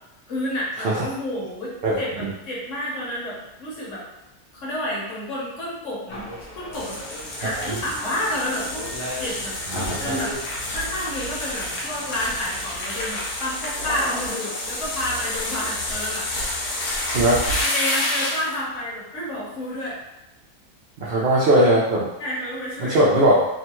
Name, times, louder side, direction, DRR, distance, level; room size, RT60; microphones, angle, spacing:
voice 1, 0.3-4.0 4.5-10.3 10.7-16.3 17.6-20.0 22.2-23.0, left 1 dB, 60° left, -6 dB, 1.1 m, -30 dB
voice 2, 1.8-2.3 7.6-7.7 9.7-10.2 17.1-17.4 21.0-22.1 22.8-23.5, right 1 dB, 80° right, -6 dB, 0.5 m, -19 dB
sound 1, 6.1-12.8, left 1 dB, 40° left, 0.6 m, -38 dB
sound 2, 6.7-18.6, left 1 dB, 80° left, 1.2 m, -29 dB
3.0 x 2.2 x 2.9 m, 0.94 s
omnidirectional pair, 1.6 m